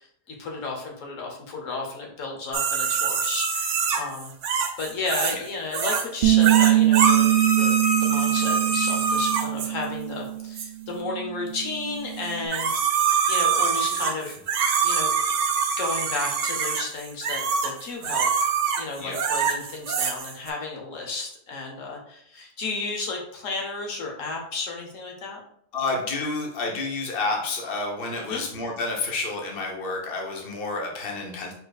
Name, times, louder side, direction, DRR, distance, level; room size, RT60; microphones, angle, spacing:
voice 1, 0.0-4.3 4.8-12.7 13.3-14.4 14.8-15.1 15.8-18.3 18.8-25.4 28.2-28.4, left 3 dB, 85° left, 1 dB, 1.3 m, -33 dB
sound 1, 2.5-5.5 5.7-6.1 6.4-9.7 10.6-10.7 12.2-20.5, right 5 dB, 75° right, 1.0 m, -25 dB
Bass guitar, 6.2-10.6 10.9-12.5, right 15 dB, 60° right, 0.6 m, -23 dB
voice 2, 13.6-14.3 19.0-19.2 25.7-31.5, left 3 dB, 50° left, 0 dB, 1.1 m, -30 dB
4.9 x 4.4 x 2.3 m, 0.68 s
omnidirectional pair, 1.3 m